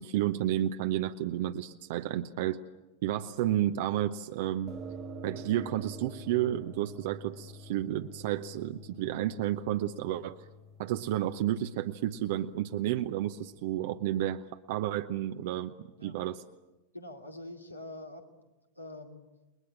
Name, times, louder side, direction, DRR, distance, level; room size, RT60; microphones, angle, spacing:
voice 1, 0.0-2.6 3.0-4.7 5.2-10.4 10.8-14.4 14.7-16.4, right 12 dB, 50° right, 7 dB, 0.8 m, -31 dB
sound 1, 4.7-13.8, right 1 dB, 25° right, 1.6 m, -48 dB
voice 2, 16.9-18.5 18.8-19.3, left 1 dB, 85° left, 3 dB, 2.6 m, -45 dB
29.0 x 21.5 x 8.8 m, 1.1 s
figure-of-eight pair, 90°, 0 cm